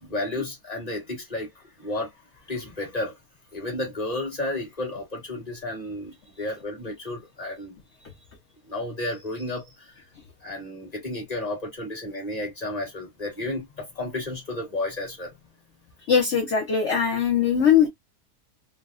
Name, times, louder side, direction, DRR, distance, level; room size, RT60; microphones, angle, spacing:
voice 1, 0.0-2.1 2.5-3.2 3.5-7.8 8.7-9.9 10.4-15.3, left 2 dB, 25° left, 1.6 m, -32 dB
voice 2, 16.0-17.9, left 7 dB, 55° left, 0.9 m, -20 dB
3.3 x 2.3 x 2.3 m
omnidirectional pair, 1.7 m